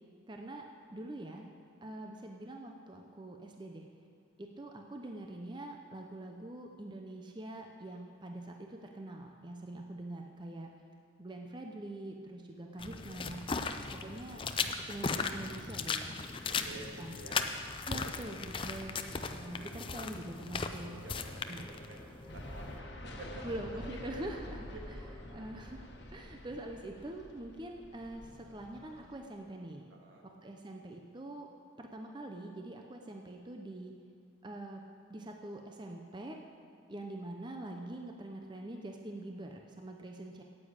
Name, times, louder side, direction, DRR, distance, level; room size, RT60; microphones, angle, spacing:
voice 1, 0.3-1.5 1.8-3.9 4.4-10.7 11.2-13.4 13.9-14.4 14.9-16.2 16.7-17.2 17.9-21.0 21.5-21.7 23.4-24.7 25.3-29.9 30.2-31.5 31.8-34.0 34.4-36.4 36.9-40.4, right 1 dB, 25° right, 2 dB, 0.6 m, -44 dB
sound 1, 12.7-13.0 14.1-16.6 17.3-26.3 27.7-29.2, equal, 5° left, 1.6 m, -59 dB
sound 2, 12.8-22.8, left 4 dB, 25° left, 0.5 m, -38 dB
voice 2, 13.7-14.0 16.4-17.4 17.8-18.2 20.9-23.5 23.7-25.2 29.9-30.3, right 2 dB, 80° right, -1 dB, 2.1 m, -51 dB
sound 3, 22.3-29.3, left 1 dB, 65° left, 1.3 m, -48 dB
9.7 x 8.5 x 8.7 m, 2.3 s
head